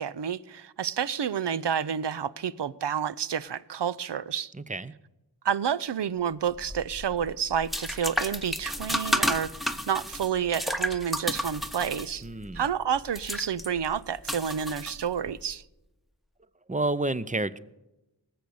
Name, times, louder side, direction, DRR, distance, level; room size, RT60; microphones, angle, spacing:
voice 1, 0.0-4.5 5.4-12.3 12.5-15.6, right 8 dB, 80° right, 0.6 m, -29 dB
voice 2, 4.5-4.9 12.2-12.6 16.7-17.6, right 2 dB, 20° right, 0.6 m, -29 dB
sound 1, 6.5-15.4, equal, ahead, 1.0 m, -32 dB
19.0 x 7.8 x 7.0 m
wide cardioid pair, 65°, 41 cm